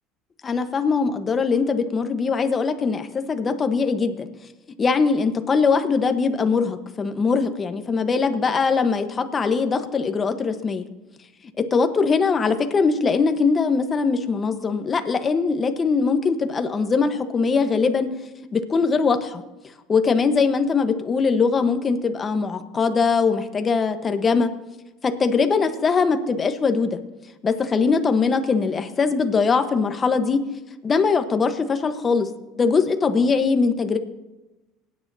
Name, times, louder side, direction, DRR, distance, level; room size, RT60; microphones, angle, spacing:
voice 1, 0.4-4.3 4.8-10.8 11.6-18.1 18.5-19.4 19.9-24.5 25.0-27.0 27.4-30.4 30.8-32.3 32.6-34.0, left 5 dB, 30° left, 7 dB, 1.1 m, -21 dB
20.0 x 9.8 x 2.8 m, 1.1 s
supercardioid pair, 105°, 0 cm